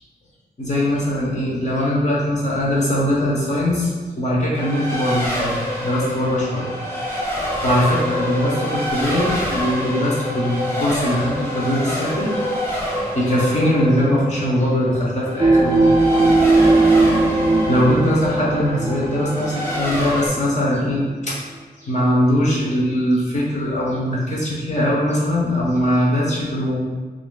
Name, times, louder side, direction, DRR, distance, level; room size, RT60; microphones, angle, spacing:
voice 1, 0.6-3.9 4.2-6.7 7.4-12.4 12.7-15.9 17.3-17.4 17.7-21.4 21.8-26.8, equal, 45° left, -5 dB, 1.0 m, -21 dB
Race car auto racing, 4.5-20.3, equal, 15° left, 0.7 m, -27 dB
sound 1, 15.4-20.2 20.7-20.8, right 2 dB, 25° right, 0.3 m, -18 dB
3.3 x 2.5 x 3.7 m, 1.4 s
wide cardioid pair, 155°, 17 cm